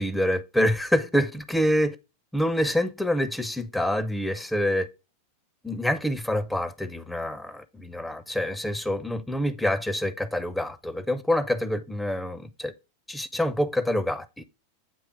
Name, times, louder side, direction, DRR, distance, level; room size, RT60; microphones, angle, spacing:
voice 1, 0.0-2.0 2.3-4.9 5.6-12.7 13.1-14.4, equal, 5° left, 0.5 m, -26 dB
7.6 x 3.1 x 4.8 m
figure-of-eight pair, 90°, 0 cm